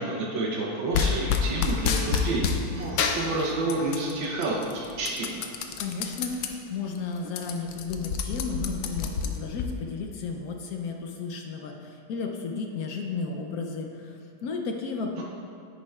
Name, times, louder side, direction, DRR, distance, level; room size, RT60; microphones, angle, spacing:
voice 1, 0.0-5.5, right 2 dB, 85° right, -3 dB, 1.6 m, -29 dB
sound 1, 0.9-2.6 3.0-4.1 4.4-6.5 6.9-7.0 7.2-9.7, left 7 dB, 90° left, 1.4 m, -28 dB
voice 2, 5.8-15.2, left 4 dB, 65° left, 2 dB, 0.9 m, -33 dB
9.7 x 9.5 x 2.3 m, 2.4 s
omnidirectional pair, 2.1 m